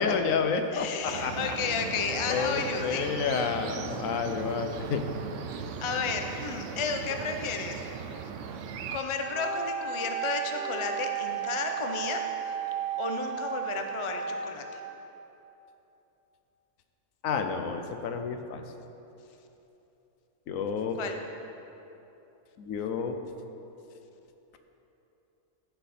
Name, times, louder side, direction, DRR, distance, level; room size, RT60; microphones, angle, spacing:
voice 1, 0.0-1.3 2.3-5.0 17.2-18.6 20.5-21.0 22.6-23.2, left 5 dB, 75° left, 6 dB, 1.0 m, -30 dB
voice 2, 0.7-3.1 5.5-7.8 8.9-12.2 13.0-14.8 21.0-21.2, left 5 dB, 50° left, 5 dB, 0.3 m, -32 dB
sound 1, 1.1-9.0, right 6 dB, 70° right, 0.8 m, -38 dB
Wind instrument woodwind instrument, 9.1-15.0, right 8 dB, 30° right, 0.9 m, -34 dB
14.5 x 5.7 x 4.2 m, 3.0 s
omnidirectional pair, 1.5 m